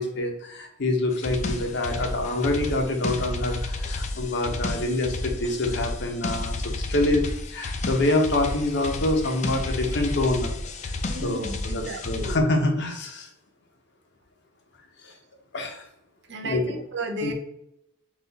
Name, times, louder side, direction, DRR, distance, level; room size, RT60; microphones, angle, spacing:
voice 1, 0.0-6.6 6.9-7.2 7.5-10.5 10.8-10.9 11.2-13.3 15.0-15.1 15.5-15.9 16.4-16.6 17.2-17.3, left 2 dB, 60° left, 3 dB, 0.8 m, -26 dB
sound 1, 1.1-12.4, left 2 dB, 35° left, 0.4 m, -31 dB
voice 2, 11.1-12.4 16.3-17.3, right 1 dB, 60° right, 3 dB, 0.7 m, -34 dB
4.1 x 2.5 x 3.9 m, 0.81 s
head